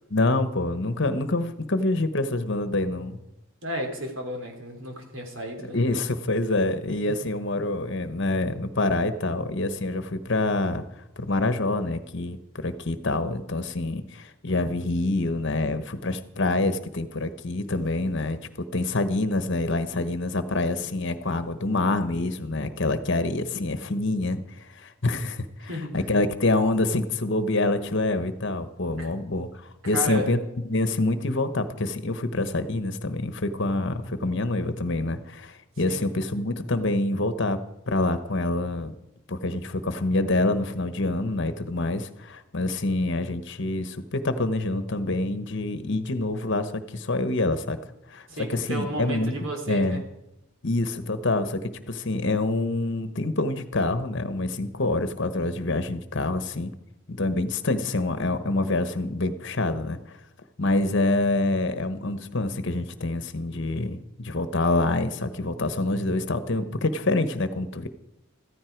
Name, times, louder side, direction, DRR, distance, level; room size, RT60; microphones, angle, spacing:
voice 1, 0.1-3.2 5.7-10.8 11.2-30.4 30.7-37.6 37.9-38.9 39.3-47.8 48.1-49.3 49.7-50.0 50.6-56.7 57.1-60.2 60.6-67.9, left 2 dB, 55° left, 10 dB, 1.2 m, -26 dB
voice 2, 3.6-5.8 7.1-7.2 25.6-26.0 29.0-29.1 29.8-30.3 35.9-36.0 48.3-50.0, equal, 60° right, 3 dB, 3.3 m, -32 dB
15.0 x 14.0 x 4.6 m, 0.91 s
head